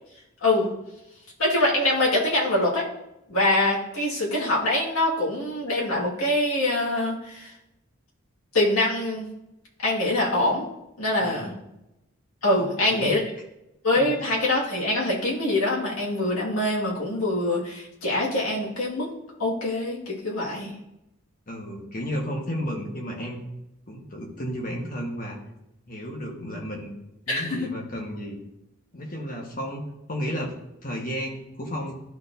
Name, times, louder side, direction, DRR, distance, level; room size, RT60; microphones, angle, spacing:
voice 1, 1.4-2.9 3.3-7.5 8.5-9.3 9.8-10.6 11.0-11.5 12.4-13.2 13.8-19.1 19.4-20.8 27.3-27.7, left 1 dB, 85° left, -4 dB, 2.0 m, -24 dB
voice 2, 11.2-11.5 12.6-13.1 14.0-14.2 21.5-23.4 23.9-25.4 25.9-26.9 27.3-28.4 28.9-30.6 30.8-32.0, equal, 40° left, 0 dB, 1.4 m, -33 dB
12.0 x 4.3 x 2.7 m, 0.87 s
head